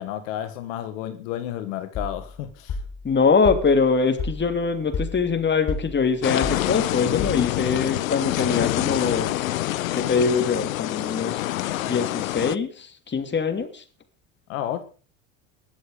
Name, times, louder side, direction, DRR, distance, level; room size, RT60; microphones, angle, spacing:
voice 1, 0.0-2.8 14.5-14.8, left 11 dB, 75° left, 9 dB, 1.6 m, -31 dB
sound 1, 1.9-7.8, left 4 dB, 50° left, 4.0 m, -33 dB
voice 2, 3.0-9.4 9.9-11.4 11.8-13.8, left 5 dB, 25° left, 7 dB, 2.8 m, -23 dB
sound 2, 6.2-12.6, left 16 dB, 90° left, 0.6 m, -26 dB
20.5 x 7.3 x 5.1 m, 0.38 s
hypercardioid pair, 75°, 39 cm